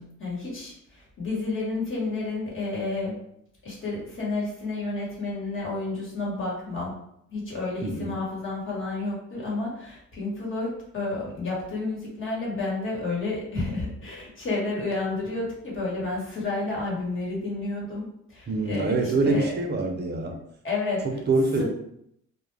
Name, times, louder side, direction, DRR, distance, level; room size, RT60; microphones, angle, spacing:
voice 1, 0.0-3.2 3.6-6.9 7.3-18.0 18.3-19.5 20.6-21.6, left 3 dB, 40° left, -4 dB, 1.2 m, -31 dB
voice 2, 7.8-8.1 18.5-20.4 21.0-21.6, right 3 dB, 35° right, 3 dB, 0.6 m, -25 dB
2.3 x 2.1 x 3.2 m, 0.75 s
cardioid pair, 90°, 30 cm